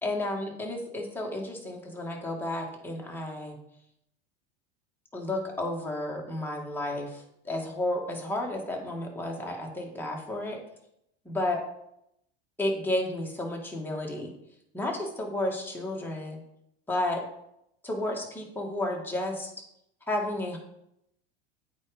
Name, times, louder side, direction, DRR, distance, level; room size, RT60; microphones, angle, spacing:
voice 1, 0.0-3.6 5.1-10.6 11.3-11.6 12.6-14.3 14.7-16.4 16.9-17.2 17.8-19.5 20.1-20.6, left 1 dB, 5° left, -1 dB, 2.3 m, -32 dB
8.2 x 5.2 x 5.1 m, 0.77 s
hypercardioid pair, 90°, 33 cm